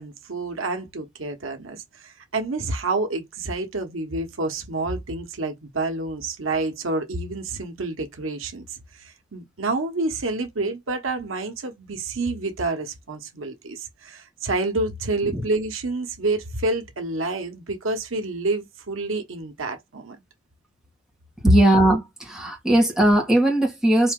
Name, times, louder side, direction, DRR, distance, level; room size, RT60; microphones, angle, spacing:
voice 1, 0.0-20.2, right 3 dB, 85° right, 1.0 m, -28 dB
voice 2, 21.4-24.1, right 1 dB, 5° right, 1.3 m, -19 dB
4.3 x 2.8 x 3.7 m
head